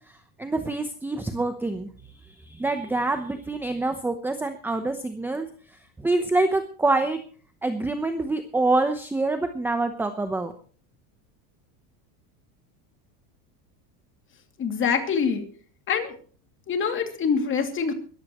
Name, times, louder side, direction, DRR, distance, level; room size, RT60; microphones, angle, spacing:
voice 1, 0.4-1.9 2.5-5.5 6.0-7.2 7.6-10.5, right 2 dB, 5° right, 7 dB, 0.8 m, -26 dB
voice 2, 14.6-15.5 15.9-16.2 16.7-17.9, left 6 dB, 25° left, 6 dB, 2.6 m, -25 dB
21.0 x 14.5 x 3.1 m, 0.43 s
supercardioid pair, 155°, 46 cm